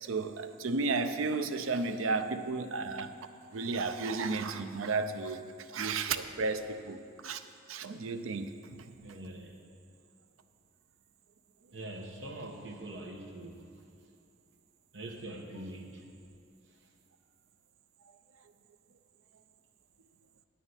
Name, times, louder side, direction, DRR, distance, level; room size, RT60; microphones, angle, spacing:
voice 1, 0.0-3.1 3.5-7.4 7.7-8.6, right 3 dB, 85° right, 10 dB, 0.5 m, -33 dB
voice 2, 9.0-9.6 11.7-13.6 14.9-16.1, right 1 dB, 70° right, 1 dB, 1.1 m, -43 dB
9.2 x 5.6 x 8.1 m, 2.5 s
head